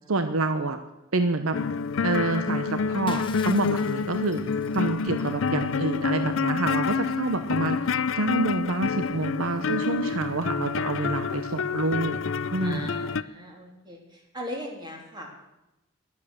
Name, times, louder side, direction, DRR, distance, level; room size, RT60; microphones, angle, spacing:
voice 1, 0.1-0.8 1.1-1.6 2.0-4.4 4.7-7.8 8.2-12.2 12.5-13.0, right 2 dB, 90° right, 9 dB, 0.9 m, -27 dB
sound 1, 1.5-13.2, left 5 dB, 70° left, 0.5 m, -28 dB
Shatter, 3.1-5.8, left 4 dB, 25° left, 1.3 m, -45 dB
voice 2, 12.6-15.4, equal, 20° right, 1 dB, 3.2 m, -39 dB
21.5 x 8.5 x 6.5 m, 0.95 s
head